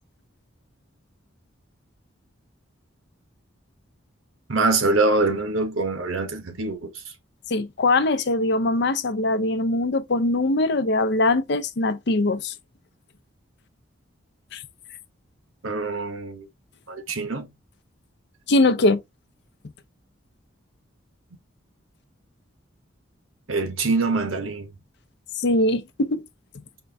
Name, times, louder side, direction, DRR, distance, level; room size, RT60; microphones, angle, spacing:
voice 1, 4.5-6.9 15.6-16.5 16.9-17.5 23.5-24.7, right 3 dB, 80° right, 1.2 m, -24 dB
voice 2, 7.5-12.5 14.5-14.6 18.5-19.0 25.3-26.2, left 2 dB, 55° left, 0.5 m, -22 dB
4.4 x 2.6 x 3.3 m
head